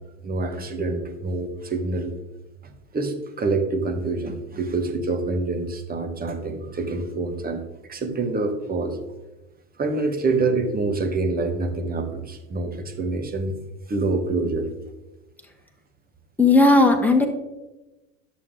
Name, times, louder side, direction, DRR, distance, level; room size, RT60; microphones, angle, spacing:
voice 1, 0.2-2.1 2.9-7.6 7.9-9.0 9.8-13.5 13.9-14.7, right 3 dB, 25° right, 5 dB, 1.5 m, -26 dB
voice 2, 16.4-17.3, left 2 dB, 5° left, 4 dB, 1.5 m, -15 dB
11.0 x 6.6 x 3.8 m, 1.0 s
hypercardioid pair, 80°, 39 cm